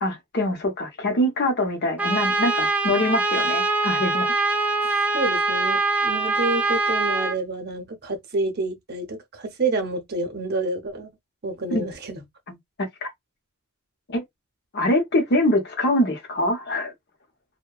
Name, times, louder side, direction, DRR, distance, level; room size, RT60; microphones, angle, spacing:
voice 1, 0.0-4.3 11.7-11.8 12.5-12.6 13.0-13.1 14.1-14.2 14.7-16.9, left 1 dB, 50° left, 0.8 m, -24 dB
Trumpet, 2.0-7.4, right 3 dB, 5° right, 0.3 m, -23 dB
voice 2, 5.1-11.1 11.4-12.2, right 2 dB, 45° right, 0.7 m, -28 dB
2.7 x 2.1 x 2.3 m
head